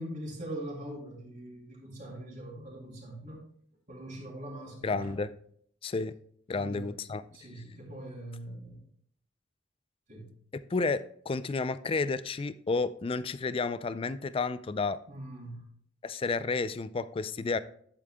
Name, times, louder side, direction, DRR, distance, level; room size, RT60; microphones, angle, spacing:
voice 1, 0.0-3.4 3.9-5.1 6.5-6.9 7.3-8.8 10.1-10.3 15.1-15.7, right 1 dB, 40° right, -4 dB, 3.1 m, -42 dB
voice 2, 4.8-5.3 5.8-6.1 6.5-7.2 10.5-15.0 16.0-17.6, left 4 dB, 30° left, 14 dB, 0.3 m, -31 dB
11.0 x 8.4 x 2.2 m, 0.63 s
head